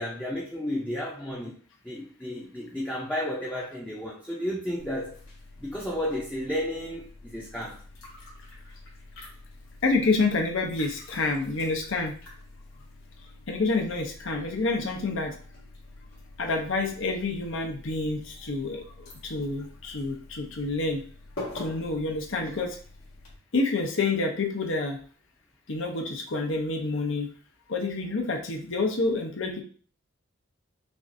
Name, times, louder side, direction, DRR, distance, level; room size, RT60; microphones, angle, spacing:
voice 1, 0.0-1.6 1.8-5.2 5.6-7.8, left 1 dB, 5° left, -4 dB, 0.6 m, -32 dB
sound 1, 4.8-23.4, left 2 dB, 80° left, 1.8 m, -47 dB
voice 2, 9.8-12.1 13.5-15.4 16.4-21.0 21.5-22.8 23.5-25.0 25.7-27.3 27.7-29.6, left 3 dB, 65° left, 3 dB, 0.7 m, -28 dB
5.8 x 2.5 x 2.6 m, 0.43 s
head